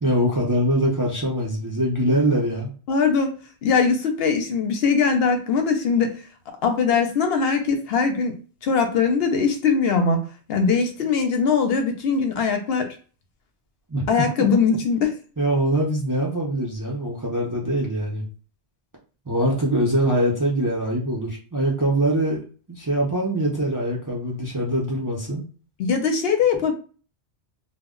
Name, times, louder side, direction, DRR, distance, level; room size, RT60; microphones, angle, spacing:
voice 1, 0.0-2.7 13.9-14.0 14.7-14.8 15.4-18.3 19.3-22.4 22.7-25.4, right 1 dB, 25° right, -3 dB, 0.4 m, -23 dB
voice 2, 2.9-3.4 3.6-6.2 6.6-8.4 8.6-10.2 10.5-12.9 14.1-15.1 25.8-26.7, left 5 dB, 70° left, 5 dB, 0.8 m, -21 dB
2.1 x 2.1 x 3.6 m, 0.38 s
omnidirectional pair, 1.1 m